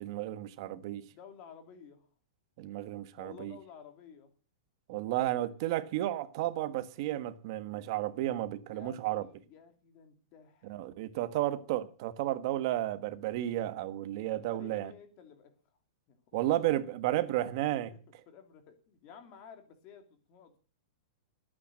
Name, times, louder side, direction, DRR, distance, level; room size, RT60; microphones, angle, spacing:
voice 1, 0.0-1.1 2.6-3.6 4.9-9.3 10.6-14.9 16.3-17.9, right 14 dB, 40° right, 1.3 m, -32 dB
voice 2, 1.0-2.1 3.1-4.3 8.7-10.9 14.3-15.5 16.1-16.2 17.7-18.0 18.3-20.6, left 7 dB, 30° left, 2.9 m, -53 dB
21.0 x 9.1 x 7.6 m
supercardioid pair, 175°, 4 cm